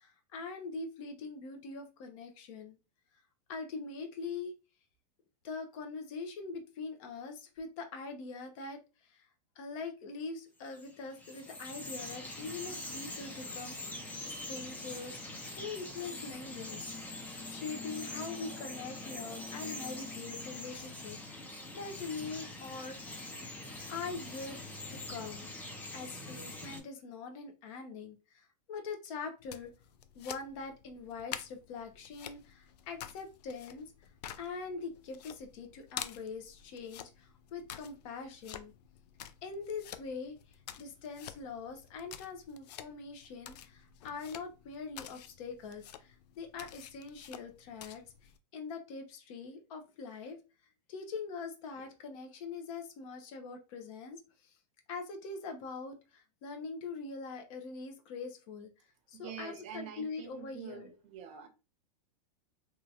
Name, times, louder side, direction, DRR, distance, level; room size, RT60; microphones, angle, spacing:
voice 1, 0.0-2.8 3.5-4.5 5.4-9.3 9.6-13.8 14.2-16.9 17.5-23.4 23.9-24.5 24.9-25.6 25.9-29.7 30.1-33.9 34.4-38.7 39.4-48.0 48.5-50.4 50.9-54.5 54.9-58.7 59.1-60.9, left 4 dB, 50° left, 0.8 m, -43 dB
Bird vocalization bird call bird song, 10.7-26.8, left 2 dB, 10° left, 0.4 m, -43 dB
sound 1, 29.4-48.4, left 10 dB, 70° left, 0.4 m, -49 dB
voice 2, 59.1-61.5, right 9 dB, 35° right, 0.7 m, -46 dB
2.9 x 2.4 x 2.7 m
hypercardioid pair, 135°, 21 cm